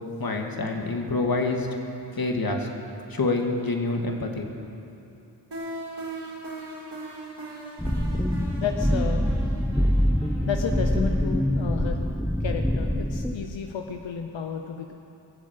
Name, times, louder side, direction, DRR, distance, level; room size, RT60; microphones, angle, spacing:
voice 1, 0.2-1.7 2.2-2.7 3.1-4.5, left 3 dB, 50° left, 2 dB, 2.1 m, -26 dB
sound 1, 5.5-12.3, right 2 dB, 65° right, 3.7 m, -40 dB
sound 2, 7.8-13.3, equal, 5° left, 1.0 m, -24 dB
voice 2, 8.6-9.3 10.5-12.1 12.4-14.9, left 7 dB, 90° left, 4 dB, 0.9 m, -32 dB
22.0 x 7.5 x 8.1 m, 2.7 s
cardioid pair, 55°, 44 cm